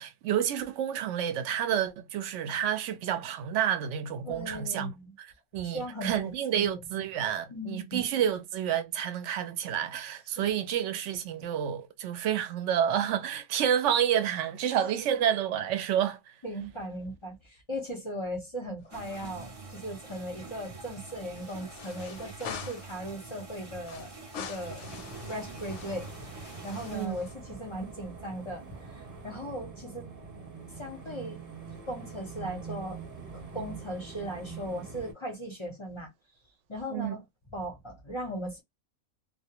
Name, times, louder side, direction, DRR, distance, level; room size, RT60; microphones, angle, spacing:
voice 1, 0.0-4.9 5.5-16.2 26.9-27.2 36.9-37.2, right 9 dB, 65° right, 0.8 m, -29 dB
voice 2, 4.2-5.1 5.6-7.0 7.5-8.0 10.4-10.5 15.1-15.3 16.4-24.1 24.4-24.9 25.3-28.7 28.9-30.1 30.8-31.4 31.9-33.0 33.3-36.1 36.7-37.2 37.5-38.6, equal, 30° left, 0.5 m, -38 dB
sound 1, 18.8-19.5 19.8-19.9 21.3-23.0 23.8-27.3, left 7 dB, 65° left, 0.8 m, -45 dB
sound 2, 18.9-27.1, right 4 dB, 45° right, 0.4 m, -46 dB
sound 3, 24.8-35.1, right 4 dB, 30° right, 1.0 m, -44 dB
2.3 x 2.1 x 2.8 m
omnidirectional pair, 1.5 m